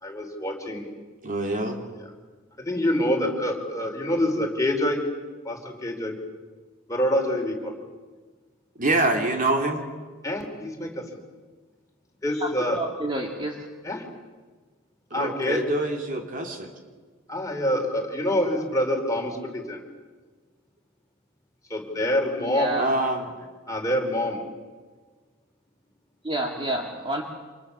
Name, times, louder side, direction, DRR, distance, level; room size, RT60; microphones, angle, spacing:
voice 1, 0.0-0.9 2.6-5.0 5.4-6.1 6.9-7.8 10.2-11.2 12.2-12.8 13.8-14.0 15.1-15.6 17.3-19.8 21.7-22.7 23.7-24.4, left 1 dB, 15° left, 1 dB, 4.5 m, -26 dB
voice 2, 1.2-1.8 8.8-9.8 15.1-16.7 22.7-23.2, right 2 dB, 40° right, 3 dB, 3.3 m, -25 dB
voice 3, 12.3-13.7 22.4-23.0 26.2-27.2, right 1 dB, 25° right, 1 dB, 2.3 m, -29 dB
28.5 x 27.0 x 7.3 m, 1.4 s
head